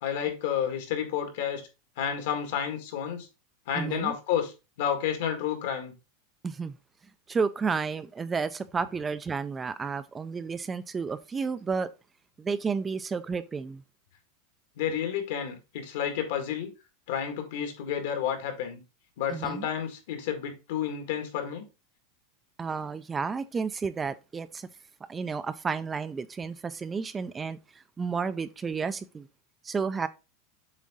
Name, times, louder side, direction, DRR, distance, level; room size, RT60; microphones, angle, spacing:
voice 1, 0.0-1.6 2.0-3.3 3.7-4.5 4.8-5.9 14.8-16.7 17.1-18.8 19.2-21.6, left 8 dB, 70° left, 1.8 m, -30 dB
voice 2, 3.7-4.2 6.4-6.8 7.3-11.9 12.4-13.8 19.3-19.7 22.6-24.7 25.1-29.3 29.6-30.1, right 5 dB, 15° right, 0.3 m, -31 dB
7.3 x 3.7 x 3.6 m
supercardioid pair, 160°, 0 cm